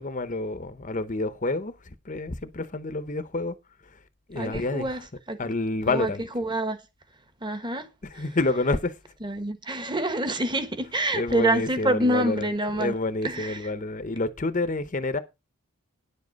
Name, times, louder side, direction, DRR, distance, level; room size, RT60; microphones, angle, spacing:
voice 1, 0.0-3.6 3.9-4.0 4.3-5.0 5.4-6.2 8.0-9.0 11.1-12.5 12.8-15.2, left 2 dB, 35° left, 0.7 m, -28 dB
voice 2, 4.3-5.4 5.9-6.8 7.4-7.9 8.1-8.3 9.2-12.9 13.2-13.7, right 1 dB, 20° right, 1.2 m, -27 dB
10.0 x 7.4 x 5.2 m
head